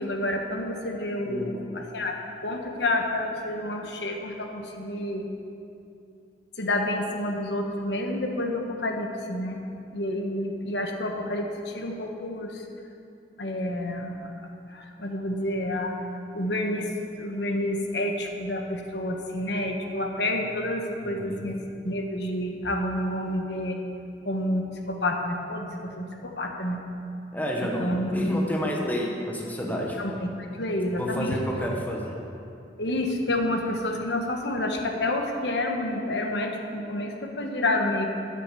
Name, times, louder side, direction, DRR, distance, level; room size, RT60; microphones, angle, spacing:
voice 1, 0.0-2.1 2.4-5.3 6.6-9.6 9.9-12.7 13.4-14.3 14.7-15.9 16.3-16.9 17.2-21.5 21.8-23.8 24.2-26.8 27.8-28.1 30.0-31.4 32.8-38.1, left 1 dB, 70° left, 2 dB, 1.3 m, -29 dB
voice 2, 1.2-1.6 21.0-21.5 27.3-30.0 31.0-32.1, equal, 10° left, -1 dB, 1.2 m, -29 dB
9.6 x 8.3 x 6.8 m, 2.7 s
head